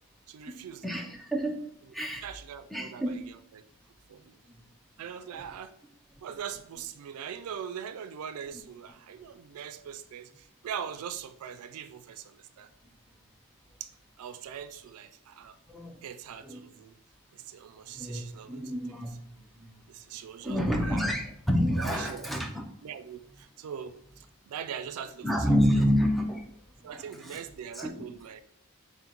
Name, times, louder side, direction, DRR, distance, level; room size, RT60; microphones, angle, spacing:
voice 1, 0.3-1.0 2.2-3.6 4.1-4.3 5.0-5.7 6.2-12.7 13.8-13.9 14.2-15.6 16.0-17.0 17.3-19.0 19.9-21.1 21.8-22.3 22.8-25.3 25.8-25.9 26.8-28.4, right 8 dB, 85° right, 11 dB, 0.3 m, -41 dB
voice 2, 0.8-2.2 2.7-3.2 4.5-4.6 5.3-5.4 15.7-16.0 16.4-16.6 17.9-19.1 19.6-19.8 20.4-22.7 25.2-26.5 26.8-27.4 27.7-28.0, equal, ahead, 2 dB, 0.4 m, -29 dB
4.3 x 2.1 x 3.8 m, 0.70 s
head